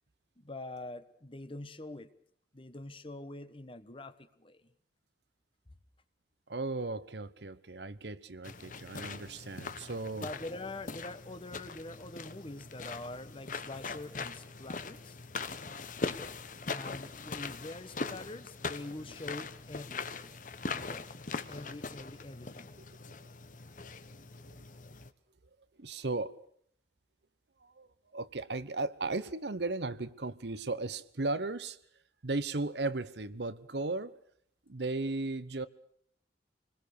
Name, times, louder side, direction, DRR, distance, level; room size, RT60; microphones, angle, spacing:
voice 1, 0.4-2.1 2.5-4.7 10.1-15.2 16.7-20.4 20.6-21.1 21.5-22.7, left 2 dB, 30° left, 1.3 m, -45 dB
voice 2, 6.5-10.3 23.8-24.0 25.8-26.4 27.6-27.9 28.1-31.8 32.2-34.2 34.7-35.7, right 3 dB, 75° right, 1.0 m, -36 dB
sound 1, 8.4-25.1, left 4 dB, 50° left, 1.1 m, -41 dB
27.0 x 21.0 x 6.8 m
head